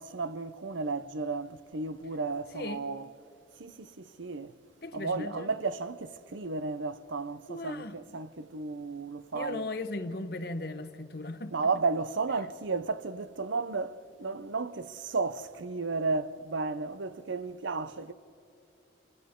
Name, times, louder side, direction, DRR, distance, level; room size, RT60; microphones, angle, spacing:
voice 1, 0.0-3.1 3.6-4.6 4.9-9.7 11.5-18.1, right 4 dB, 85° right, 0.8 m, -33 dB
voice 2, 4.8-5.5 7.5-8.0 9.3-11.5, left 2 dB, 55° left, 1.1 m, -37 dB
29.0 x 28.0 x 3.8 m
head